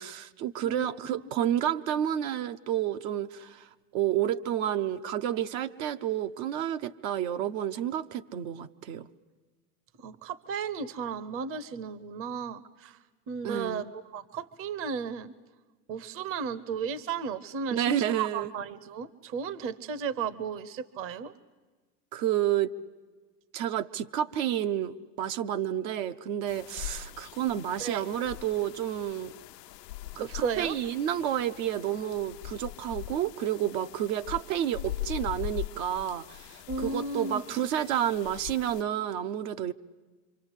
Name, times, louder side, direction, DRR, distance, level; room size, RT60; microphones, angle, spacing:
voice 1, 0.0-9.1 13.4-13.8 17.7-18.5 22.1-22.7 23.5-29.3 30.2-39.7, right 11 dB, 60° right, 9 dB, 1.0 m, -30 dB
voice 2, 10.0-13.0 13.3-15.3 15.9-21.3 27.8-28.0 30.2-30.8 36.7-37.4, right 6 dB, 30° right, 17 dB, 0.8 m, -34 dB
sound 1, 26.5-38.8, left 14 dB, 90° left, 0.7 m, -41 dB
26.5 x 24.5 x 8.2 m, 1.3 s
supercardioid pair, 125°, 47 cm